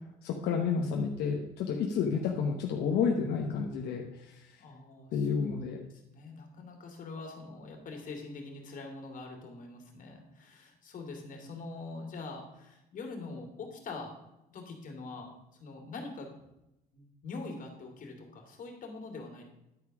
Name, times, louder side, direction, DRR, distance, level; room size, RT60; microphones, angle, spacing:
voice 1, 0.2-4.6 5.1-5.8, left 6 dB, 80° left, 1 dB, 1.0 m, -30 dB
voice 2, 4.6-5.5 6.1-14.2 14.5-15.3 15.6-16.3 16.9-19.5, left 3 dB, 50° left, 2 dB, 2.5 m, -44 dB
10.5 x 4.8 x 6.0 m, 0.90 s
cardioid pair, 110°, 17 cm